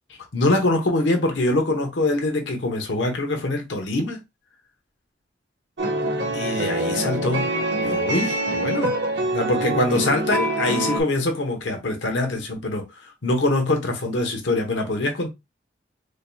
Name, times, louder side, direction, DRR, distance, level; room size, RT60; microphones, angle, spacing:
voice 1, 0.3-4.2 6.3-7.5 7.8-8.9 9.3-15.3, left 2 dB, 80° left, 1.0 m, -24 dB
sound 1, 5.8-11.0, right 1 dB, 70° right, 1.2 m, -25 dB
5.0 x 2.7 x 2.3 m
head